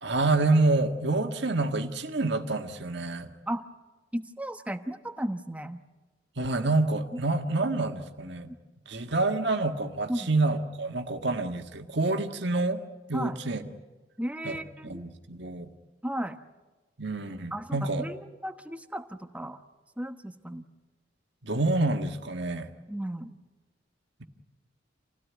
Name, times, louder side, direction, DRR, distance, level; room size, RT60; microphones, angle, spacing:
voice 1, 0.0-3.3 6.4-8.5 8.9-12.8 13.1-13.6 14.4-14.6 14.8-15.7 17.0-18.1 21.4-22.7, right 2 dB, 65° right, 5 dB, 1.8 m, -27 dB
voice 2, 4.1-5.8 8.2-8.5 10.1-10.3 13.1-13.4 14.2-15.1 16.0-16.4 17.5-19.6 20.0-20.6 22.9-23.4, equal, 10° right, 8 dB, 1.1 m, -35 dB
28.0 x 16.5 x 9.6 m, 1.2 s
head